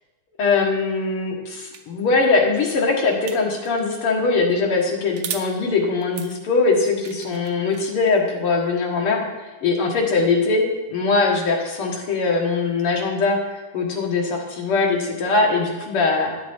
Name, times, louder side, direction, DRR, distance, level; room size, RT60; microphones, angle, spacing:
voice 1, 0.4-9.3 9.6-16.4, left 3 dB, 90° left, 0 dB, 2.3 m, -21 dB
sound 1, 1.7-1.8 3.3-3.9 5.1-5.5 6.0-8.2, right 8 dB, 65° right, 0.9 m, -36 dB
10.5 x 7.1 x 4.3 m, 1.1 s
omnidirectional pair, 2.4 m